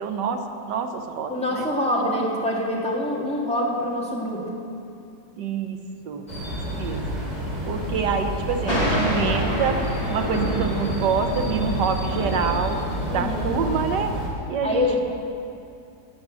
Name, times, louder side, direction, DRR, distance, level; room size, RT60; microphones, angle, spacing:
voice 1, 0.0-2.3 5.4-5.8 6.0-6.3 6.7-7.2 7.7-14.1 14.5-15.0, right 6 dB, 85° right, 5 dB, 1.5 m, -27 dB
voice 2, 1.3-4.5 13.1-13.6 14.6-15.0, left 1 dB, 5° left, -4 dB, 1.9 m, -25 dB
sound 1, 6.3-14.3, equal, 25° right, 3.0 m, -30 dB
Thunder, 8.7-13.7, equal, 20° left, 2.1 m, -27 dB
13.0 x 7.2 x 8.4 m, 2.6 s
omnidirectional pair, 1.8 m